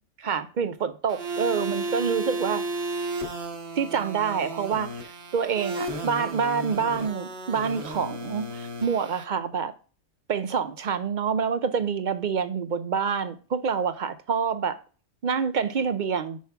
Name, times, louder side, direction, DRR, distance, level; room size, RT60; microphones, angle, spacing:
voice 1, 0.2-2.6 3.8-9.7 10.3-14.8 15.2-16.4, right 6 dB, 70° right, 0.4 m, -27 dB
sound 1, 1.1-9.2, right 2 dB, 50° right, 1.2 m, -33 dB
7.3 x 5.9 x 3.4 m
omnidirectional pair, 1.5 m